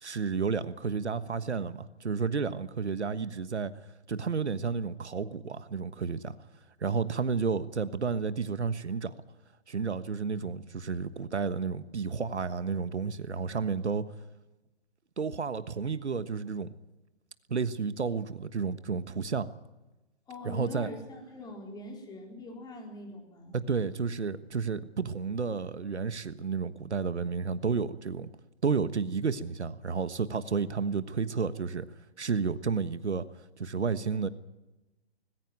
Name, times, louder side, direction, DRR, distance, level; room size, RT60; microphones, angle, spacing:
voice 1, 0.0-3.7 4.1-6.4 6.8-9.1 9.7-14.1 15.2-16.7 17.5-19.5 20.4-20.9 23.5-28.3 28.6-31.8 32.2-33.3 33.6-34.3, right 5 dB, 85° right, 1.4 m, -31 dB
voice 2, 20.3-23.6, left 2 dB, 10° left, 4.1 m, -43 dB
20.0 x 16.5 x 9.2 m
hypercardioid pair, 140°, 33 cm